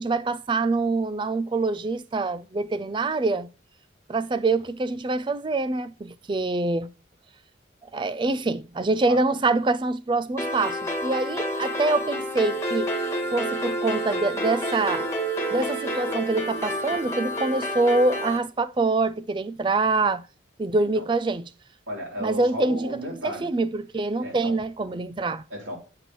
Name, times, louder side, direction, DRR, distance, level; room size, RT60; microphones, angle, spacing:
voice 1, 0.0-3.5 4.1-6.9 7.9-12.9 13.3-15.1 15.5-20.2 20.6-21.4 22.2-22.9 23.2-25.4, right 3 dB, 25° right, 0.3 m, -25 dB
sound 1, 10.4-18.4, equal, 15° left, 1.9 m, -29 dB
voice 2, 21.9-23.5 24.2-24.6 25.5-25.8, equal, 85° right, 3.4 m, -34 dB
7.5 x 6.8 x 3.1 m
head